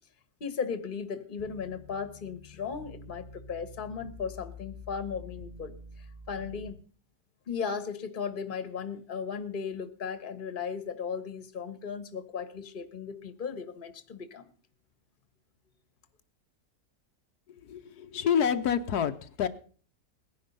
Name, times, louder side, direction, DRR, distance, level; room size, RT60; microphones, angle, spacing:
voice 1, 0.4-6.8 7.5-14.5, left 6 dB, 35° left, 12 dB, 1.3 m, -36 dB
sound 1, 1.4-6.7, left 3 dB, 25° right, 2.3 m, -47 dB
voice 2, 17.7-19.5, left 8 dB, 85° left, 8 dB, 1.4 m, -28 dB
18.5 x 10.5 x 5.4 m, 0.43 s
omnidirectional pair, 1.6 m